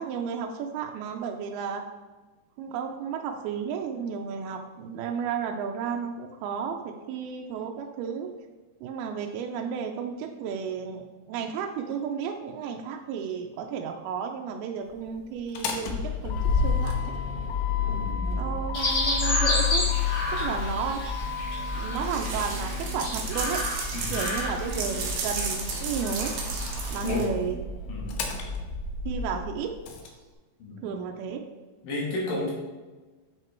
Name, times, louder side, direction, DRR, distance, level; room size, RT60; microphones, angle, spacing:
voice 1, 0.0-1.9 2.6-8.3 8.8-17.1 18.3-19.9 20.3-21.0 21.8-23.6 24.1-26.3 26.9-27.6 29.1-29.7 30.0-30.2 30.8-31.4, right 7 dB, 80° right, 3 dB, 2.5 m, -33 dB
Motor vehicle (road), 15.4-30.1, left 5 dB, 85° left, 3.0 m, -31 dB
voice 2, 17.9-18.3 23.9-24.3 27.0-27.3 27.9-28.3 30.6-30.9 31.8-32.5, left 2 dB, 65° left, -5 dB, 3.6 m, -32 dB
Chirp tweet, 18.7-27.2, left 1 dB, 35° left, 3.0 m, -32 dB
sound 1, 21.9-27.5, right 4 dB, 65° right, 2.1 m, -34 dB
8.2 x 6.0 x 4.4 m, 1.3 s
omnidirectional pair, 4.5 m